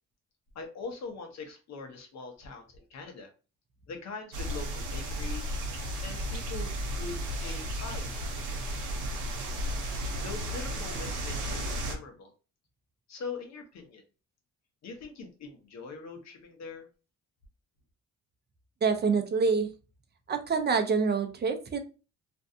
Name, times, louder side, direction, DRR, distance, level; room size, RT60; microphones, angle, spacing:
voice 1, 0.5-3.3 3.9-5.5 6.0-8.8 10.2-12.3 13.1-14.0 14.8-16.9, left 4 dB, 60° left, 4 dB, 0.8 m, -42 dB
sound 1, 4.3-11.9, equal, 90° right, 0.7 m, -34 dB
voice 2, 18.8-19.7 20.3-21.8, right 5 dB, 35° right, 7 dB, 0.5 m, -26 dB
2.6 x 2.2 x 2.6 m, 0.33 s
cardioid pair, 90°, 30 cm